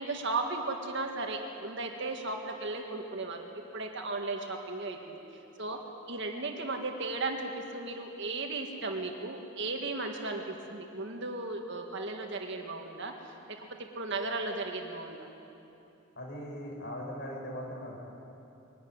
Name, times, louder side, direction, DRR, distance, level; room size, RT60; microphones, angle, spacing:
voice 1, 0.0-5.2 5.6-5.8 6.1-15.3, right 3 dB, 55° right, 3 dB, 1.8 m, -36 dB
voice 2, 16.2-18.0, equal, 50° left, 0 dB, 4.7 m, -39 dB
22.5 x 12.0 x 9.5 m, 2.9 s
head